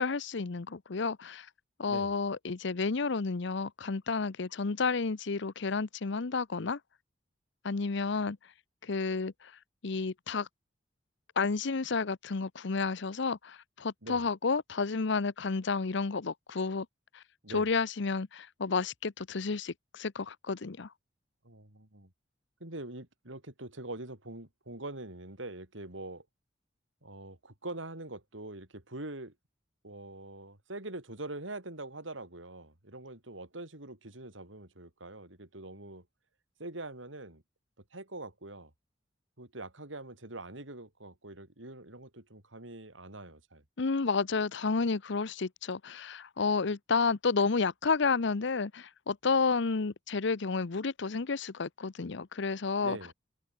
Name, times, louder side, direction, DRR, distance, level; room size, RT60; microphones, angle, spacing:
voice 1, 0.0-1.5 1.8-6.8 7.6-8.4 8.8-9.5 9.8-10.5 11.4-16.9 17.1-17.2 17.5-20.9 43.8-53.0, left 4 dB, 70° left, 0.8 m, -31 dB
voice 2, 21.4-22.1 22.6-26.3 27.0-29.3 29.8-36.1 36.6-37.4 37.9-38.7 39.4-43.6 52.8-53.1, right 2 dB, 85° right, 4.6 m, -44 dB
head